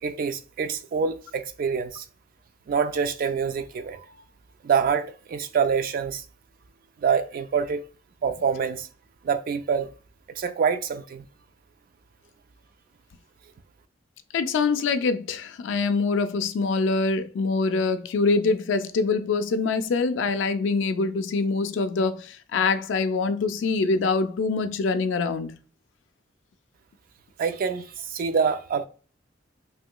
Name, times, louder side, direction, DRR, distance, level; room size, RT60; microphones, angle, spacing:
voice 1, 0.0-2.1 2.7-4.0 4.6-6.2 7.0-7.8 8.2-8.9 9.2-9.9 10.4-11.2 27.4-28.9, right 6 dB, 50° right, 0.3 m, -26 dB
voice 2, 14.3-25.6, left 4 dB, 70° left, 0.4 m, -24 dB
3.1 x 2.9 x 2.2 m
head